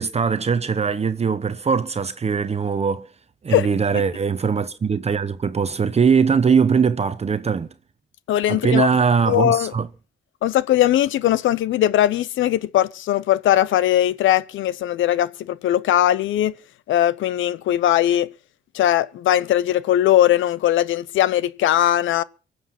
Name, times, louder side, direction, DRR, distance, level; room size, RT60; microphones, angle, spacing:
voice 1, 0.0-3.1 3.4-7.7 8.5-9.9, right 6 dB, 30° right, 0.9 m, -21 dB
voice 2, 8.3-8.9 9.3-9.7 10.4-16.5 16.9-18.3 18.7-22.2, left 12 dB, 75° left, 0.8 m, -19 dB
23.5 x 8.0 x 5.9 m
cardioid pair, 90°, 20 cm